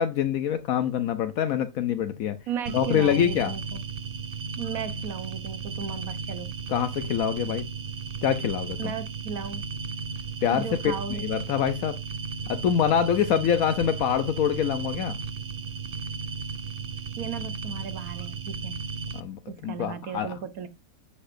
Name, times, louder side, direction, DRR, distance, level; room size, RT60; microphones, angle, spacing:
voice 1, 0.0-2.4 2.7-3.5 6.7-7.7 8.2-8.9 10.4-12.0 12.5-15.2 19.1-20.4, left 9 dB, 75° left, 1.2 m, -25 dB
voice 2, 2.5-3.8 4.6-6.5 8.8-9.6 10.5-11.4 17.2-18.8 19.5-20.7, right 7 dB, 75° right, 1.4 m, -35 dB
sound 1, 2.7-19.2, right 5 dB, 50° right, 0.8 m, -35 dB
10.0 x 7.8 x 2.6 m
omnidirectional pair, 1.5 m